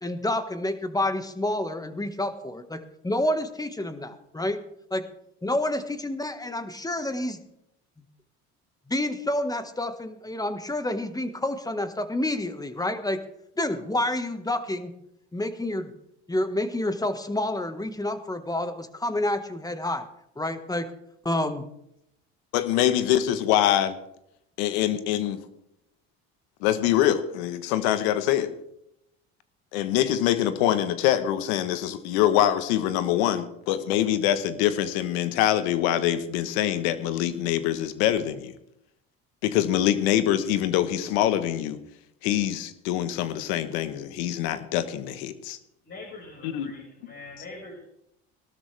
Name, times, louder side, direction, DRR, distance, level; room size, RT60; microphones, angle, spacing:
voice 1, 0.0-4.6 4.9-5.1 5.4-7.4 8.9-13.2 13.6-14.9 15.3-15.9 16.3-20.1 20.4-20.9 21.2-21.6, left 1 dB, 10° left, 9 dB, 1.5 m, -28 dB
voice 2, 22.5-24.0 24.6-25.4 26.6-28.5 29.7-38.5 39.4-41.8 42.2-45.6 46.4-46.7, left 12 dB, 85° left, 12 dB, 1.2 m, -24 dB
voice 3, 45.8-47.9, left 3 dB, 40° left, -4 dB, 5.2 m, -43 dB
17.5 x 12.5 x 3.4 m, 0.79 s
supercardioid pair, 80°, 32 cm